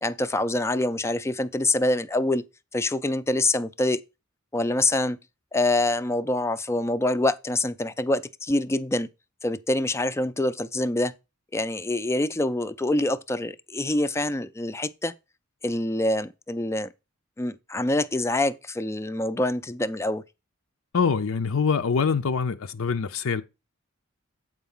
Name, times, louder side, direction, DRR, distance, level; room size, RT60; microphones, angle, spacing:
voice 1, 0.0-2.4 2.7-4.0 4.5-5.2 5.5-9.1 9.4-11.1 11.5-15.1 15.6-16.9 17.4-20.2, left 2 dB, 15° left, 0.4 m, -25 dB
voice 2, 20.9-23.4, left 5 dB, 75° left, 0.5 m, -24 dB
8.0 x 4.6 x 5.4 m
head